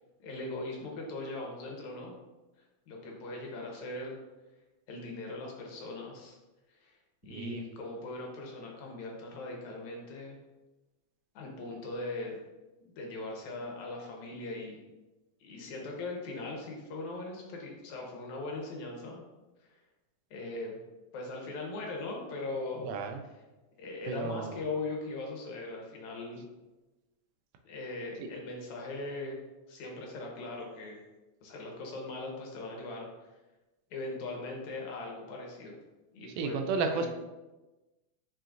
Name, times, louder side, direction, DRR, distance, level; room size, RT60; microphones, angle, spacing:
voice 1, 0.2-2.2 2.9-4.2 4.9-6.4 6.8-6.9 7.2-10.4 11.4-12.4 13.0-14.8 15.4-19.2 20.3-20.8 21.1-22.9 23.8-26.5 27.6-29.4 29.7-31.0 31.4-33.1 33.9-35.7 36.1-37.1, left 2 dB, 70° left, -1 dB, 2.4 m, -40 dB
voice 2, 7.3-7.6 22.8-23.2 24.1-24.6 36.4-37.1, right 4 dB, 90° right, 5 dB, 2.2 m, -32 dB
7.5 x 6.0 x 2.6 m, 1.1 s
omnidirectional pair, 3.5 m